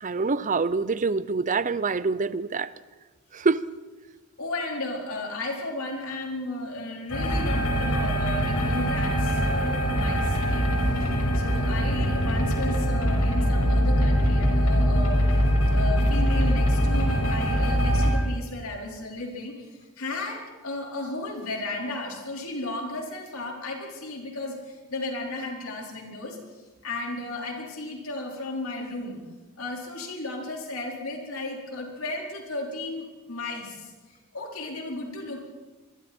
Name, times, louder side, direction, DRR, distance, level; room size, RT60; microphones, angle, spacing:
voice 1, 0.0-2.7 3.3-3.6, right 4 dB, 35° right, 0.6 m, -25 dB
voice 2, 4.4-15.2 15.7-29.2 29.6-33.9 34.3-35.4, left 2 dB, 70° left, 4.6 m, -34 dB
sound 1, 7.1-18.1, equal, 90° left, 5.5 m, -23 dB
27.0 x 22.5 x 4.5 m
head